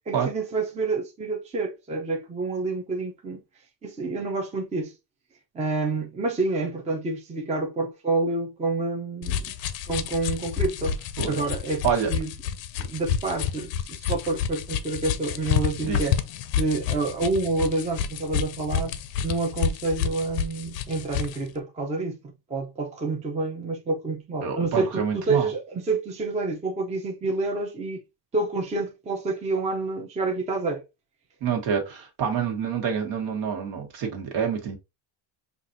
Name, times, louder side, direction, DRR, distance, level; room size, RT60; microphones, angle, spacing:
voice 1, 0.1-3.4 3.8-4.9 5.5-9.5 9.9-11.0 11.2-12.3 12.8-16.2 16.5-22.2 22.5-28.0 28.3-30.8, right 3 dB, 15° right, 0.5 m, -28 dB
sound 1, 9.2-21.4, left 8 dB, 65° left, 0.6 m, -29 dB
voice 2, 24.4-25.5 31.4-34.8, right 7 dB, 65° right, 1.5 m, -27 dB
5.8 x 2.5 x 2.6 m
cardioid pair, 165°, 48 cm